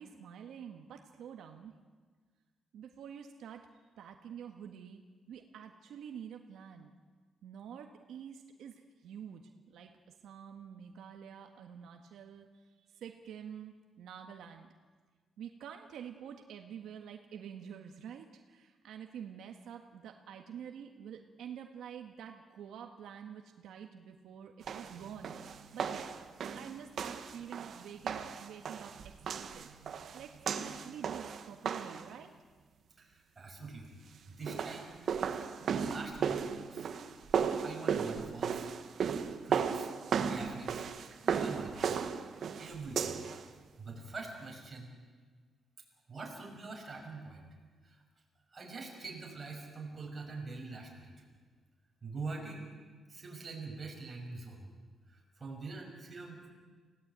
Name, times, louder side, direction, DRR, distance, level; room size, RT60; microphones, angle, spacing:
voice 1, 0.0-1.7 2.7-3.7 4.0-5.0 5.3-6.9 7.4-9.9 10.2-12.5 12.9-14.7 15.4-25.3 25.7-26.1 26.5-29.7 30.1-32.3, right 8 dB, 75° right, 4 dB, 1.7 m, -48 dB
sound 1, 24.7-32.1 34.3-43.4, right 7 dB, 45° right, 1.5 m, -35 dB
voice 2, 33.0-33.9 34.2-35.0 35.4-36.9 37.6-38.7 39.4-39.9 40.3-42.0 42.6-43.2 43.8-44.9 46.1-47.4 47.8-48.0 48.5-51.2 52.0-52.7 53.1-54.7 55.1-56.5, right 3 dB, 20° right, -1 dB, 6.2 m, -44 dB
29.5 x 17.5 x 9.1 m, 1.5 s
cardioid pair, 175°, 0 cm